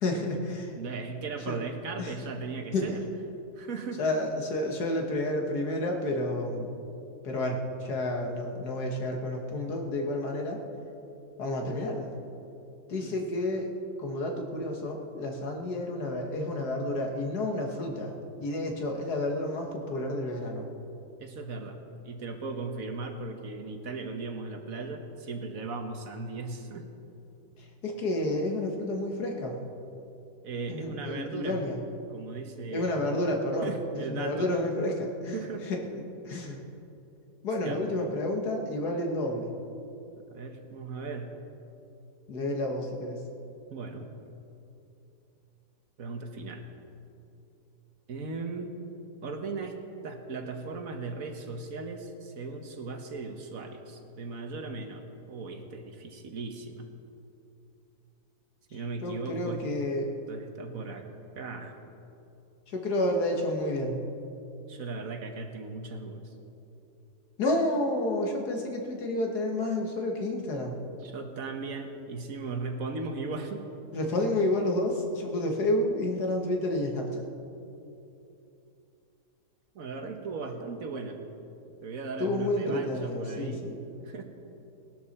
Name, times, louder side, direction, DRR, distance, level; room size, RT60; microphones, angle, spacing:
voice 1, 0.0-0.8 1.5-1.6 2.0-2.2 2.7-2.9 4.0-6.8 7.2-10.6 11.4-12.1 12.9-13.7 14.0-20.7 27.6-29.7 30.7-31.8 32.7-33.7 34.1-36.6 37.4-39.5 42.3-43.2 59.0-60.2 62.7-64.1 67.4-70.8 73.9-77.2 82.2-83.8, left 1 dB, 80° left, 2 dB, 2.0 m, -30 dB
voice 2, 0.8-3.0 3.6-4.0 13.0-13.2 21.2-26.9 30.4-31.6 32.1-33.0 33.6-34.5 35.3-35.7 37.6-37.8 40.3-41.3 43.7-44.1 46.0-46.6 48.1-48.7 49.2-56.9 58.7-59.6 60.3-61.1 61.3-61.7 64.7-66.3 71.0-73.7 79.7-81.2 81.8-83.7 84.0-84.2, right 3 dB, 60° right, 5 dB, 1.4 m, -37 dB
19.0 x 12.0 x 4.2 m, 2.8 s
omnidirectional pair, 1.7 m